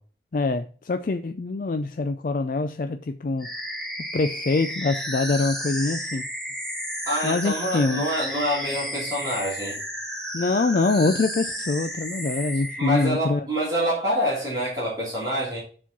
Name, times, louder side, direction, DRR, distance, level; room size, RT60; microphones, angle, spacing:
voice 1, 0.3-3.5 4.1-6.3 7.2-8.1 10.3-13.5, left 3 dB, 50° left, 0.4 m, -24 dB
sound 1, 3.4-13.1, equal, ahead, 1.6 m, -33 dB
voice 2, 7.0-9.8 12.8-15.6, equal, 20° right, 3.2 m, -26 dB
7.0 x 4.3 x 5.9 m
head